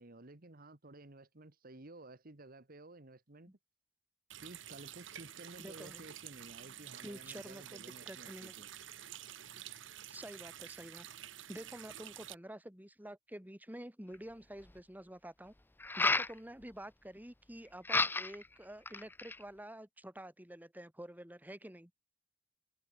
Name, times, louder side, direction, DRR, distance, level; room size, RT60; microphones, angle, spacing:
voice 1, 0.0-3.6 4.4-8.7, right 2 dB, 50° right, 1.6 m, -54 dB
Water tap faucet, 4.3-12.3, right 11 dB, 80° right, 1.1 m, -50 dB
voice 2, 5.6-6.0 7.0-8.5 10.1-11.0 11.5-15.5 15.9-21.9, right 1 dB, 10° right, 2.8 m, -49 dB
sound 1, 14.1-14.2 15.8-16.3 17.8-18.4 18.9-19.4, left 3 dB, 10° left, 0.6 m, -31 dB
head